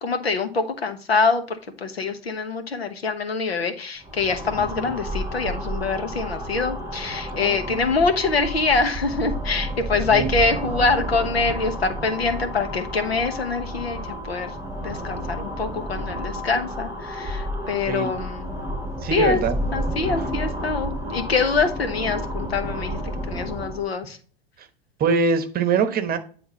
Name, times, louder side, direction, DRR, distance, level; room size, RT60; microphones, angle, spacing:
voice 1, 0.0-14.5 14.8-18.5 19.1-19.4 19.7-23.0 23.3-24.2, left 4 dB, 90° left, 7 dB, 1.3 m, -24 dB
sound 1, 4.0-23.9, equal, 10° right, 3.7 m, -31 dB
voice 2, 7.3-7.8 10.1-10.3 17.9-18.1 19.0-19.6 25.0-26.2, right 5 dB, 30° right, 9 dB, 1.1 m, -23 dB
9.9 x 3.5 x 4.3 m, 0.42 s
hypercardioid pair, 95°, 30 cm